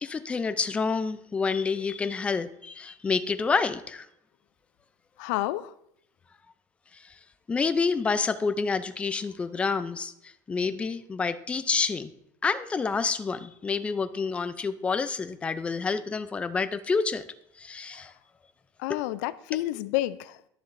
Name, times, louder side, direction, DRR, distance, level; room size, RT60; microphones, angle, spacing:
voice 1, 0.0-4.1 6.9-7.1 7.5-12.1 12.4-17.3 17.6-18.1 18.9-19.0, left 4 dB, 10° left, 0.4 m, -28 dB
voice 2, 5.2-5.7 17.9-18.0 18.8-20.4, left 16 dB, 75° left, 0.4 m, -30 dB
11.5 x 7.0 x 2.6 m
cardioid pair, 160°, 10 cm